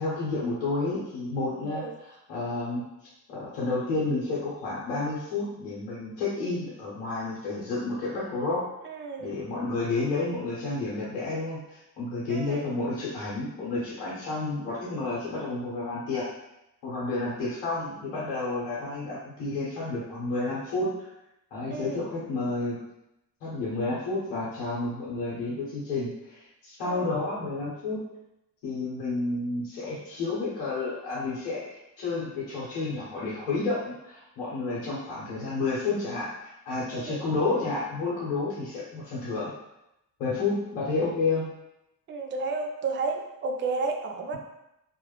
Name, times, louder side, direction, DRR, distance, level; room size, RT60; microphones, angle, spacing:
voice 1, 0.0-2.9 3.3-8.7 9.2-16.3 16.8-21.1 21.5-22.8 23.4-28.0 28.6-39.5 40.2-41.5, left 3 dB, 75° left, -8 dB, 0.9 m, -30 dB
voice 2, 8.8-9.3 12.3-12.6 21.7-22.0 26.8-27.1 36.9-37.2 42.1-44.4, right 3 dB, 30° right, 4 dB, 0.4 m, -32 dB
2.4 x 2.0 x 3.1 m, 0.88 s
hypercardioid pair, 60°, 43 cm